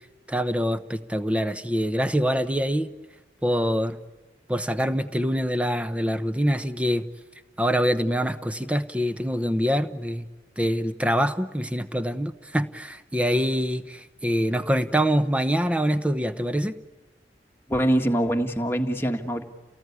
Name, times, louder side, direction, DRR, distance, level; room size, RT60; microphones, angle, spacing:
voice 1, 0.3-2.9 3.4-4.0 4.5-7.1 7.6-10.2 10.6-16.8, equal, 5° right, 11 dB, 0.9 m, -25 dB
voice 2, 17.7-19.4, right 1 dB, 10° left, 3 dB, 1.7 m, -24 dB
30.0 x 19.0 x 9.7 m, 1.2 s
head